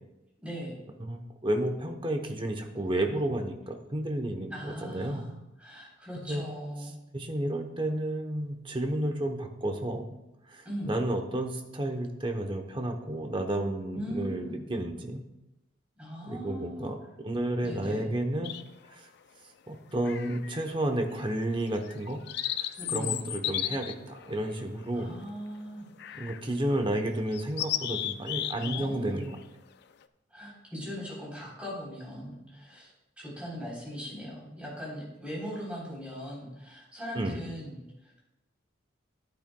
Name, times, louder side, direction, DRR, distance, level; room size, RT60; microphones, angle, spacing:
voice 1, 0.4-0.8 4.5-5.3 5.6-7.0 10.7-10.9 13.9-14.6 16.0-16.9 17.6-18.1 22.8-23.2 24.9-26.3 28.6-29.2 30.3-32.9 33.2-38.2, equal, 5° right, -5 dB, 3.6 m, -39 dB
voice 2, 1.0-5.2 6.2-6.4 7.1-10.2 10.5-15.2 16.3-18.6 18.9-19.1 19.7-22.2 22.5-25.1 26.1-29.4 37.1-37.4, right 1 dB, 25° right, 4 dB, 0.9 m, -31 dB
sound 1, 18.4-18.9 20.0-20.7 21.1-21.3 21.8-25.3 26.0-26.5 26.8-26.9 27.3-28.9 29.2-29.4, left 11 dB, 55° left, 0.4 m, -35 dB
12.5 x 8.9 x 2.3 m, 0.91 s
head